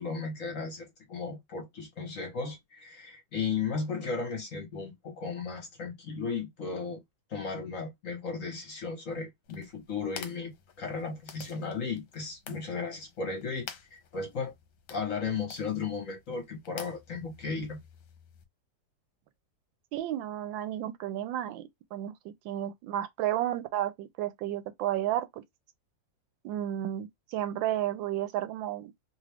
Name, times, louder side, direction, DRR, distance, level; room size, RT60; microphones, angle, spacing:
voice 1, 0.0-7.0 7.3-14.5 14.9-17.8, left 5 dB, 50° left, 1.4 m, -35 dB
sound 1, 9.4-18.4, left 8 dB, 70° left, 1.3 m, -50 dB
voice 2, 19.9-25.4 26.4-28.9, right 12 dB, 85° right, 1.3 m, -32 dB
3.1 x 2.4 x 3.3 m
omnidirectional pair, 2.0 m